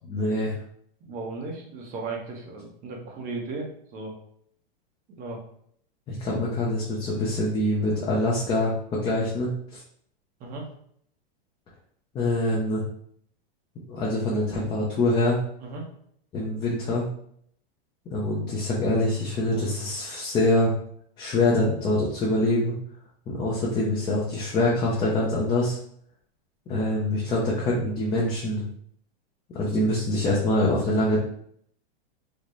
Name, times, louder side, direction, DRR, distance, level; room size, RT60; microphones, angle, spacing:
voice 1, 0.1-0.6 6.1-9.8 12.1-12.8 13.9-15.4 16.3-17.1 18.1-20.7 21.2-22.7 23.3-25.8 26.7-28.6 29.5-31.2, left 1 dB, 15° left, -5 dB, 0.4 m, -25 dB
voice 2, 1.0-4.2 5.2-5.4 10.4-10.7 15.6-15.8, right 3 dB, 30° right, 0 dB, 0.8 m, -35 dB
3.8 x 2.1 x 3.0 m, 0.66 s
supercardioid pair, 145°, 30 cm